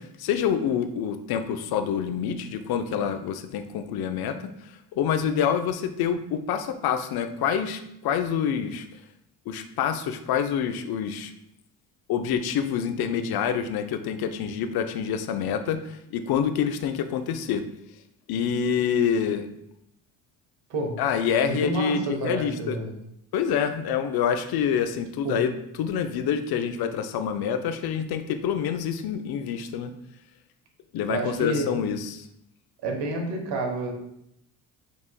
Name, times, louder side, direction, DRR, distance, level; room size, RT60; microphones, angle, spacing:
voice 1, 0.2-8.9 9.5-11.3 12.1-17.6 18.3-19.5 21.0-22.8 23.3-25.5 25.8-29.9 30.9-32.3, left 7 dB, 50° left, 8 dB, 0.5 m, -27 dB
voice 2, 21.4-22.9 25.2-25.4 31.1-31.7 32.8-33.9, right 2 dB, 60° right, 2 dB, 1.1 m, -29 dB
5.2 x 3.0 x 2.2 m, 0.79 s
supercardioid pair, 65°, 48 cm